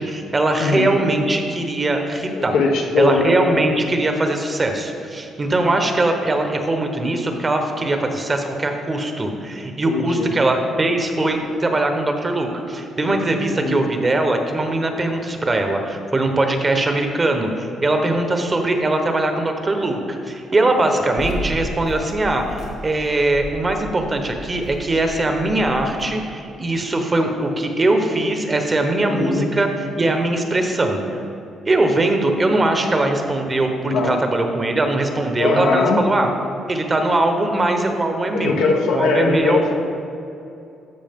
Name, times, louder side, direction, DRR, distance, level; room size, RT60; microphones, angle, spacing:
voice 1, 0.0-2.5 3.0-29.7 30.0-31.0 31.7-36.3 36.7-38.6 38.9-39.7, right 2 dB, 30° right, 4 dB, 1.0 m, -21 dB
voice 2, 0.6-1.0 2.3-3.6 9.9-10.3 13.0-13.2 13.5-13.8 29.0-29.5 33.8-34.2 35.4-36.0 38.3-39.7, left 3 dB, 90° left, 1 dB, 1.0 m, -21 dB
sound 1, 21.2-26.0, equal, 70° left, 2.0 m, -34 dB
13.5 x 4.9 x 3.6 m, 2.7 s
cardioid pair, 90°, 0 cm